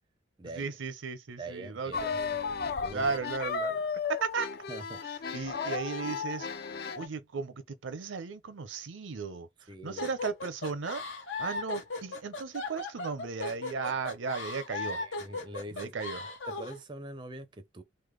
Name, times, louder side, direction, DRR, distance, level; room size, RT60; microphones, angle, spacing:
voice 1, 0.5-2.2 2.9-3.8 4.1-4.5 5.3-11.0 11.4-15.0 15.7-16.3, right 5 dB, 85° right, 0.6 m, -36 dB
voice 2, 1.4-2.0 2.8-3.1 4.7-5.0 9.7-10.1 15.0-15.9 16.2-17.8, right 2 dB, 25° right, 0.4 m, -43 dB
sound 1, 1.9-7.1, left 5 dB, 50° left, 0.4 m, -34 dB
sound 2, 10.0-16.8, left 3 dB, 80° left, 0.9 m, -37 dB
3.3 x 2.1 x 3.2 m
head